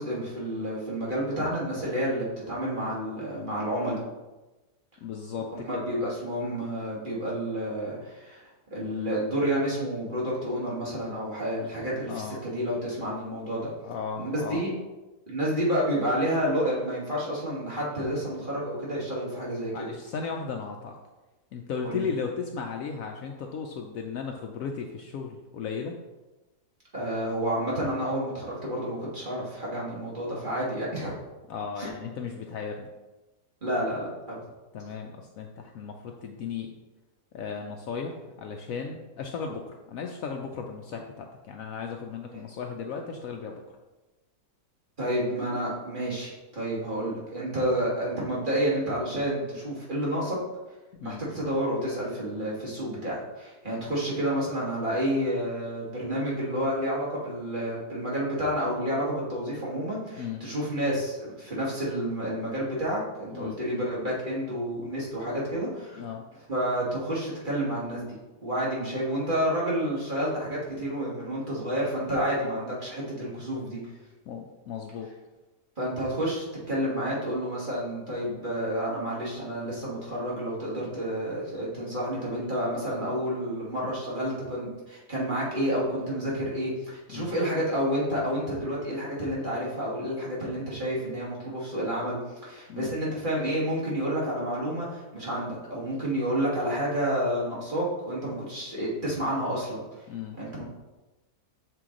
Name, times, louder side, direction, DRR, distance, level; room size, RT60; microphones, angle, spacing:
voice 1, 0.0-4.0 5.5-13.7 14.2-14.7 15.3-19.9 21.8-22.0 26.9-31.2 31.8-31.9 33.6-34.4 45.0-50.4 51.0-66.1 66.5-68.1 68.4-73.8 75.8-99.8 100.3-100.6, equal, 30° right, -6 dB, 1.9 m, -30 dB
voice 2, 5.0-5.8 12.1-12.4 13.8-14.6 19.7-20.9 21.5-25.9 31.5-32.9 34.7-36.7 37.3-43.6 50.9-51.2 60.1-60.4 63.3-63.6 66.0-66.2 74.3-75.1 87.1-87.4 92.7-92.9 100.1-100.4, left 6 dB, 70° left, 2 dB, 0.9 m, -35 dB
6.8 x 4.6 x 3.7 m, 1.1 s
omnidirectional pair, 1.7 m